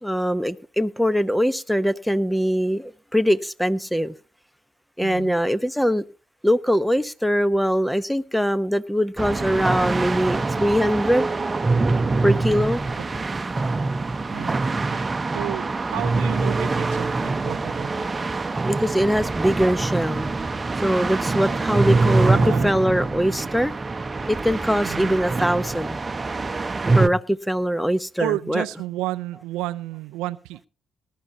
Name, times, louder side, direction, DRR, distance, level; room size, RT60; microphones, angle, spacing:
voice 1, 0.0-4.1 5.0-6.0 6.4-11.3 12.2-12.8 18.6-20.3 20.8-23.7 24.3-26.0 26.9-28.6, equal, ahead, 0.9 m, -22 dB
voice 2, 5.0-5.4 13.0-13.1 14.3-14.6 14.9-18.1 22.0-22.7 24.8-25.2 28.2-30.7, right 16 dB, 85° right, 0.5 m, -32 dB
sound 1, 9.2-27.1, right 3 dB, 30° right, 1.0 m, -24 dB
19.5 x 12.5 x 2.8 m
supercardioid pair, 55°, 0 cm